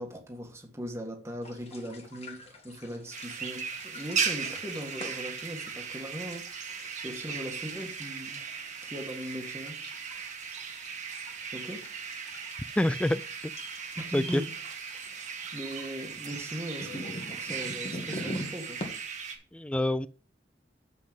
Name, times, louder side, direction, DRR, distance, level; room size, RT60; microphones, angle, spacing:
voice 1, 0.0-6.5 7.0-8.4 8.8-9.8 11.5-11.9 13.9-14.5 15.5-18.8, equal, 15° right, 1.7 m, -39 dB
sound 1, 1.4-18.9, left 1 dB, 35° left, 1.8 m, -45 dB
sound 2, 3.1-19.3, right 6 dB, 45° right, 1.6 m, -37 dB
voice 2, 12.8-13.2 14.1-14.4 19.5-20.1, left 1 dB, 5° left, 0.3 m, -26 dB
7.8 x 6.2 x 5.2 m
head